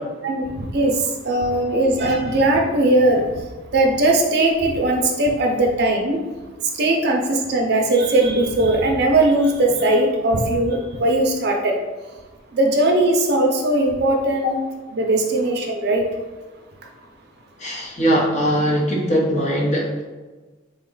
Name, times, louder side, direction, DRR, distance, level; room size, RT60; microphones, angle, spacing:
voice 1, 1.3-3.2 3.7-6.2 6.8-11.7 12.6-14.6 14.9-16.0, right 1 dB, 55° right, 1 dB, 0.5 m, -19 dB
voice 2, 17.6-20.0, equal, 35° left, -2 dB, 0.7 m, -20 dB
3.7 x 2.2 x 3.8 m, 1.3 s
head